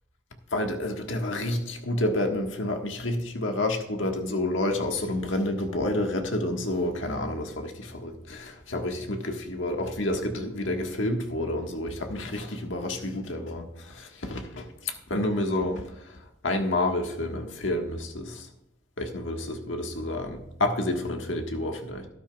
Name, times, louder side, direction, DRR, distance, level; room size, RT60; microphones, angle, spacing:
voice 1, 0.5-16.2 16.4-18.5 19.0-22.1, left 1 dB, 75° left, 4 dB, 1.5 m, -29 dB
13.0 x 12.5 x 2.4 m, 0.85 s
head